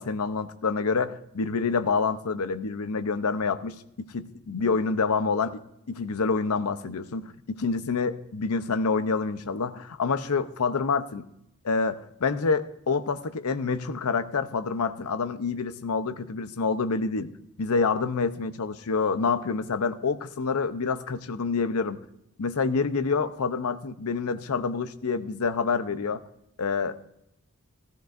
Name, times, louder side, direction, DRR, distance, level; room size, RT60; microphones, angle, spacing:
voice 1, 0.0-5.6 5.9-11.3 11.6-17.3 17.6-22.0 22.4-26.2 26.6-27.1, left 4 dB, 80° left, 11 dB, 0.7 m, -27 dB
15.0 x 14.5 x 2.5 m, 0.80 s
head